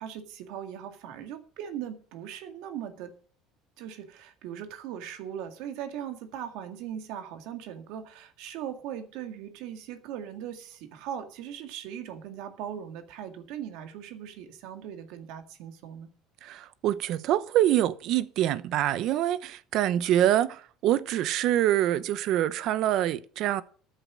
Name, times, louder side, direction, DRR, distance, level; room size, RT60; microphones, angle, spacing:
voice 1, 0.0-3.1 3.8-16.1, right 9 dB, 75° right, 2.1 m, -39 dB
voice 2, 16.4-23.6, right 12 dB, 55° right, 0.8 m, -25 dB
13.5 x 7.7 x 6.4 m
cardioid pair, 135°, 0 cm